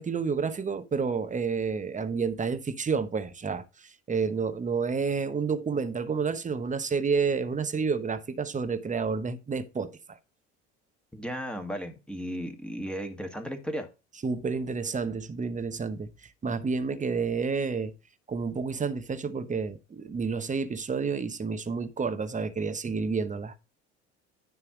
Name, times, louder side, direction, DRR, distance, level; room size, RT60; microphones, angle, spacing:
voice 1, 0.0-10.2 14.2-17.9 18.3-23.5, right 5 dB, 20° right, 1.0 m, -30 dB
voice 2, 11.1-13.9, equal, 5° left, 1.8 m, -35 dB
9.8 x 3.5 x 5.8 m
hypercardioid pair, 75°, 35 cm